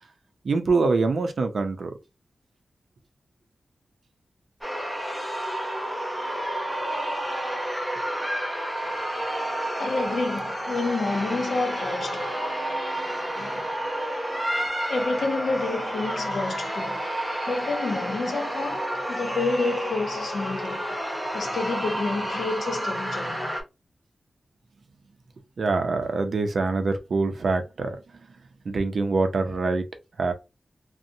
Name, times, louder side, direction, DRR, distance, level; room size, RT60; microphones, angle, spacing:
voice 1, 0.4-2.0 25.6-28.0 28.7-29.9 30.2-30.3, right 3 dB, 65° right, 0.5 m, -24 dB
sound 1, 4.6-23.6, right 1 dB, 5° right, 0.5 m, -30 dB
voice 2, 9.8-12.3 13.3-13.7 14.9-17.0 17.5-21.0 21.3-23.6, left 3 dB, 70° left, 0.7 m, -29 dB
2.6 x 2.1 x 2.6 m
wide cardioid pair, 160°, 0 cm